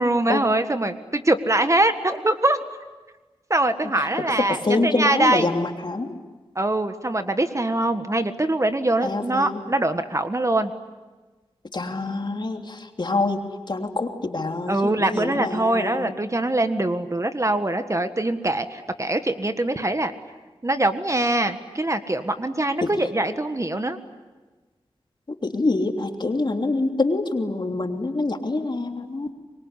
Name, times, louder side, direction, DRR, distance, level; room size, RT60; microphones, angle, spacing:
voice 1, 0.0-2.6 3.5-5.5 6.5-10.7 14.7-20.1 20.6-24.0, right 1 dB, 30° right, 9 dB, 1.6 m, -23 dB
voice 2, 4.6-6.1 9.0-9.6 11.7-16.1 22.8-22.9 25.4-29.3, left 2 dB, 50° left, 4 dB, 3.1 m, -26 dB
25.0 x 22.5 x 9.9 m, 1.3 s
cardioid pair, 50°, 10 cm